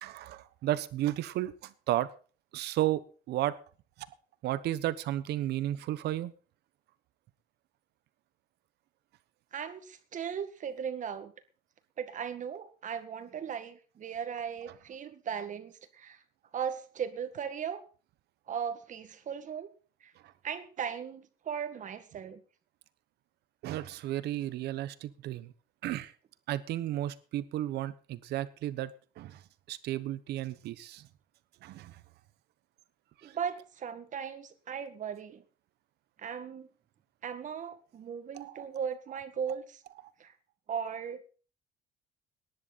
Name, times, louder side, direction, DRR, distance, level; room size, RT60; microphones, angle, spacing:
voice 1, 0.0-2.1 2.5-3.0 3.3-3.5 4.4-6.3 23.6-25.5 25.8-26.1 26.5-28.9 29.2-29.4 29.7-31.0 31.6-31.9 33.2-33.3 38.3-38.6, right 14 dB, 75° right, 1.1 m, -33 dB
voice 2, 9.5-11.3 12.0-16.2 16.5-17.9 18.5-19.7 20.0-20.1 20.4-22.4 33.2-35.4 36.2-36.7 37.2-39.8 40.2-40.3 40.7-41.2, right 7 dB, 50° right, 1.9 m, -37 dB
18.5 x 11.0 x 4.2 m
cardioid pair, 110°, 17 cm